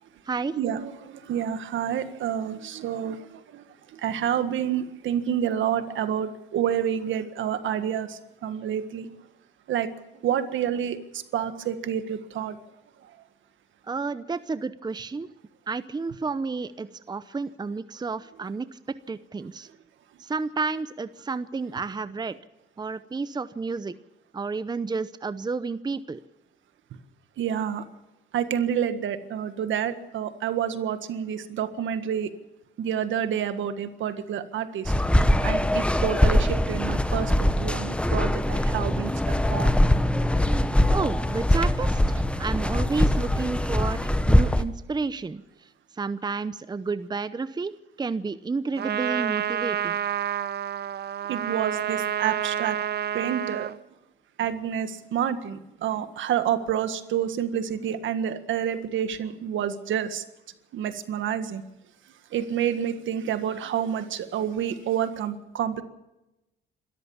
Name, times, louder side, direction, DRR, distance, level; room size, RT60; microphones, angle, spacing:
voice 1, 0.5-3.6 3.9-9.1 9.7-9.9 10.1-12.6 27.4-27.8 28.3-32.3 32.8-34.9 35.4-39.8 51.3-52.8 53.1-53.7 54.4-60.2 60.7-61.6 62.3-65.8, right 9 dB, 75° right, 1.7 m, -28 dB
voice 2, 13.9-15.3 15.7-19.7 20.2-22.4 22.8-23.9 24.3-26.2 40.9-44.0 44.3-45.4 46.0-47.7 48.0-50.0, right 4 dB, 20° right, 0.7 m, -31 dB
sound 1, 34.9-44.6, left 1 dB, 5° left, 1.2 m, -22 dB
Trumpet, 48.8-53.8, right 10 dB, 55° right, 0.8 m, -29 dB
26.5 x 13.5 x 7.2 m
cardioid pair, 90°, 20 cm